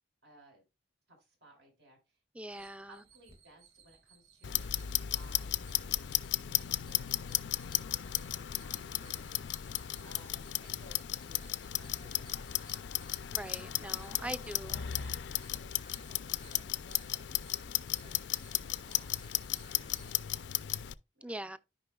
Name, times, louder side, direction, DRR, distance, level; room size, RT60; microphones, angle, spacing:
voice 1, 0.2-0.6 1.1-2.2 2.8-9.6 9.9-12.9 14.2-17.5 17.9-20.6 21.1-21.5, right 1 dB, 80° right, 4.8 m, -61 dB
voice 2, 2.3-3.0 13.3-14.8 21.2-21.6, right 1 dB, 5° right, 0.4 m, -42 dB
sound 1, 2.5-20.1, right 4 dB, 30° right, 2.0 m, -60 dB
Clock, 4.4-20.9, left 13 dB, 85° left, 0.4 m, -35 dB
13.0 x 5.3 x 2.3 m
head